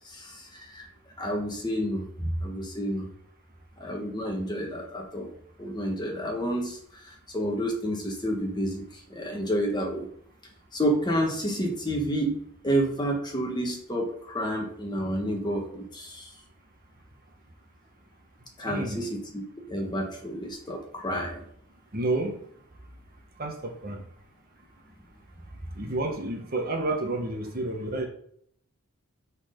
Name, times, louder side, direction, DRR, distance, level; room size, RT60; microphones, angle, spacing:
voice 1, 0.0-0.9 1.2-3.1 3.8-5.3 5.6-10.1 10.7-12.4 12.6-16.3 18.6-19.3 19.7-21.4 25.8-25.9, equal, 20° left, 0 dB, 1.2 m, -30 dB
voice 2, 18.6-19.0 21.9-22.4 23.4-24.0 25.8-28.1, right 2 dB, 40° right, 3 dB, 1.0 m, -30 dB
6.2 x 4.1 x 5.1 m, 0.65 s
head